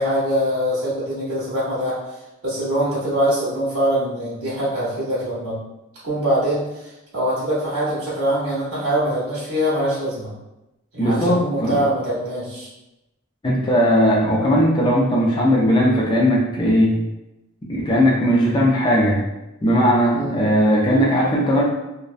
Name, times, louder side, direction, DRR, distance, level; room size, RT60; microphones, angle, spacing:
voice 1, 0.0-2.0 2.4-5.6 6.0-10.3 10.9-12.7 20.1-20.4, equal, 60° right, -10 dB, 0.8 m, -23 dB
voice 2, 11.0-11.8 13.4-16.9 17.7-19.2 19.6-21.6, equal, 20° left, -4 dB, 0.4 m, -18 dB
2.4 x 2.1 x 2.4 m, 0.96 s
head